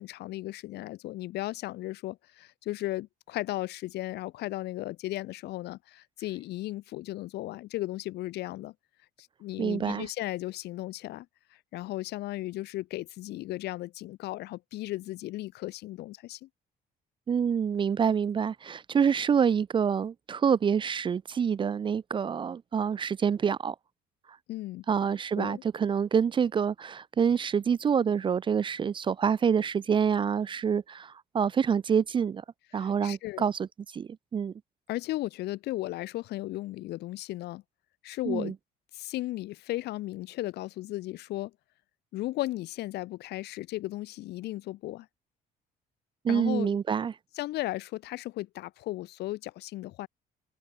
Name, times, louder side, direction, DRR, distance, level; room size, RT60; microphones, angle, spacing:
voice 1, 0.0-8.7 9.4-11.3 11.7-16.5 24.5-24.8 25.4-25.6 32.7-33.4 34.9-37.6 38.0-38.5 38.9-41.5 42.1-45.1 46.3-46.8 47.3-50.1, left 17 dB, 75° left, 1.3 m, -35 dB
voice 2, 9.6-10.1 17.3-23.8 24.9-32.4 32.7-33.7 33.9-34.5 38.3-38.5 46.2-47.1, right 7 dB, 30° right, 0.4 m, -27 dB
cardioid pair, 110°, 17 cm